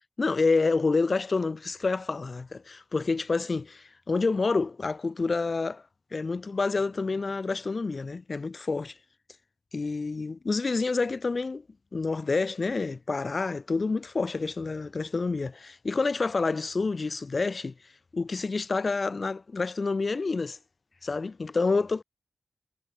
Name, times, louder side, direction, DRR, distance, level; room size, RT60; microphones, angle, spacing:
voice 1, 0.2-5.8 6.1-9.0 9.7-11.6 11.9-17.7 18.1-20.6 21.0-22.0, left 3 dB, 55° left, 7.7 m, -28 dB
wide cardioid pair, 65°, 0 cm